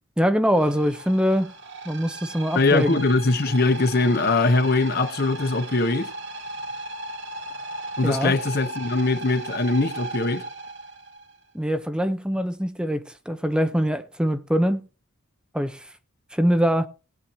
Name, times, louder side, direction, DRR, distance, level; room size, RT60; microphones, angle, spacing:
voice 1, 0.2-1.5 1.9-3.0 8.0-8.3 11.5-14.8 15.5-15.9 16.3-16.9, equal, 5° right, 0.6 m, -23 dB
sound 1, 0.6-11.4, right 2 dB, 55° right, 1.5 m, -36 dB
voice 2, 2.5-6.1 8.0-10.4, left 3 dB, 45° left, 0.8 m, -21 dB
19.5 x 8.7 x 3.0 m
head